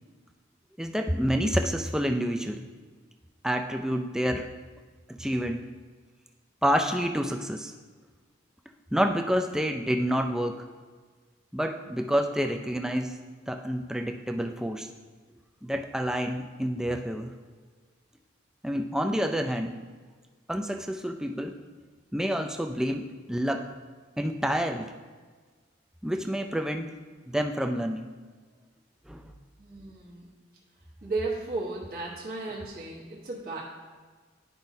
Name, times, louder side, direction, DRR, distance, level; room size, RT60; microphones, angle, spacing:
voice 1, 0.8-2.6 3.4-4.5 5.1-5.7 6.6-7.7 8.9-10.6 11.5-13.2 13.5-14.9 15.6-17.3 18.6-19.7 20.5-21.6 22.1-23.7 24.2-24.9 26.0-26.9 27.3-28.1 29.1-29.3, equal, 5° right, 5 dB, 0.3 m, -28 dB
voice 2, 29.6-30.3 31.0-33.6, right 3 dB, 50° right, -5 dB, 1.1 m, -34 dB
10.5 x 5.1 x 2.7 m, 1.5 s
head